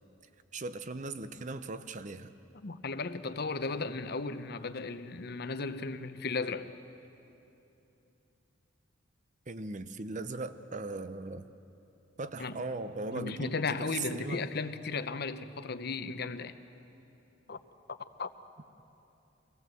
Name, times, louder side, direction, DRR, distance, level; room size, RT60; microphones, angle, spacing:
voice 1, 0.5-2.3 9.5-11.5 12.2-14.5, right 3 dB, 40° right, 12 dB, 0.7 m, -38 dB
voice 2, 2.5-6.7 12.4-12.6 13.1-16.5 17.5-17.6 17.9-18.3, left 4 dB, 55° left, 11 dB, 0.8 m, -35 dB
24.5 x 17.0 x 7.8 m, 2.9 s
head